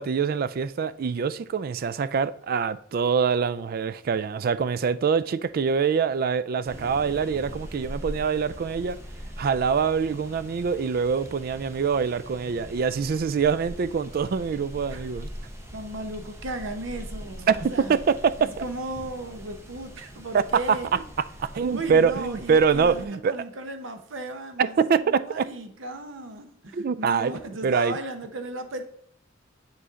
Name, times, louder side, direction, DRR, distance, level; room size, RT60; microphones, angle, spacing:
voice 1, 0.0-9.0 9.4-15.3 17.5-18.6 20.3-20.8 21.5-23.3 24.6-25.5 26.7-27.3 27.6-28.0, right 6 dB, 50° right, 0.3 m, -24 dB
sound 1, 6.6-23.1, equal, 15° right, 0.9 m, -42 dB
voice 2, 15.7-18.0 18.4-21.0 21.7-28.9, right 2 dB, 75° right, 0.8 m, -36 dB
9.3 x 3.2 x 3.6 m
head